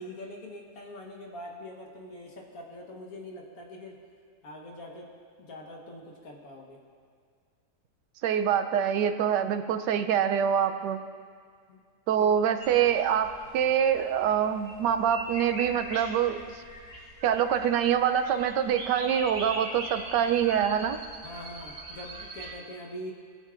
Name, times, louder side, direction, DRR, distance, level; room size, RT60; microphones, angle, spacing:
voice 1, 0.0-4.0 4.4-5.1 5.4-6.8 11.7-11.8 12.2-12.3 21.2-23.1, left 1 dB, 60° left, 0 dB, 1.7 m, -43 dB
voice 2, 8.2-11.0 12.1-16.6 17.2-21.0, right 9 dB, 90° right, 8 dB, 1.2 m, -25 dB
sound 1, 12.6-22.5, right 1 dB, 70° right, 2.5 m, -41 dB
19.0 x 8.9 x 2.5 m, 2.1 s
omnidirectional pair, 1.8 m